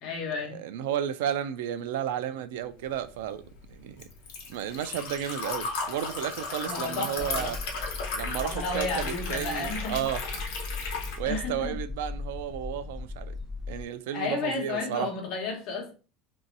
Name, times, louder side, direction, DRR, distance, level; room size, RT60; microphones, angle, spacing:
voice 1, 0.0-0.6 6.6-7.6 8.4-10.0 11.2-11.7 14.1-15.9, left 3 dB, 40° left, 1.0 m, -32 dB
voice 2, 0.5-3.4 3.7-4.1 4.5-7.6 8.1-10.4 11.2-13.4 13.7-15.1, right 10 dB, 90° right, 0.3 m, -33 dB
Liquid, 2.9-11.2, left 4 dB, 70° left, 0.8 m, -35 dB
sound 1, 7.1-13.8, left 3 dB, 10° right, 0.5 m, -38 dB
3.0 x 2.7 x 2.6 m
cardioid pair, 175°, 0 cm